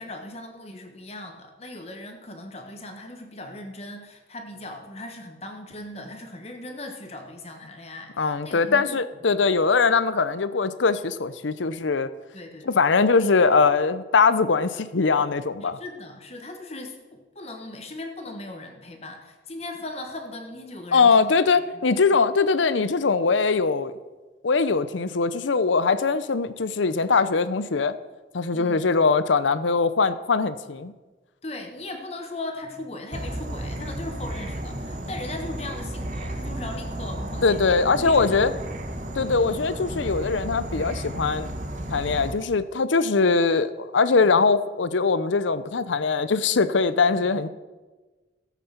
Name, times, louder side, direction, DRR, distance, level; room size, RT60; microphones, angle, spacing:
voice 1, 0.0-9.0 9.4-9.5 12.3-12.7 15.6-21.3 21.7-21.8 28.5-28.8 31.4-38.6, left 2 dB, 35° left, 4 dB, 1.3 m, -38 dB
voice 2, 8.2-12.1 12.7-15.8 20.9-23.9 24.4-27.9 28.3-30.9 37.4-38.5 39.1-41.5 41.9-47.5, left 4 dB, 85° left, 14 dB, 0.7 m, -21 dB
Insect / Frog, 33.1-42.3, right 1 dB, 40° right, 1.4 m, -33 dB
14.0 x 8.2 x 5.9 m, 1.2 s
head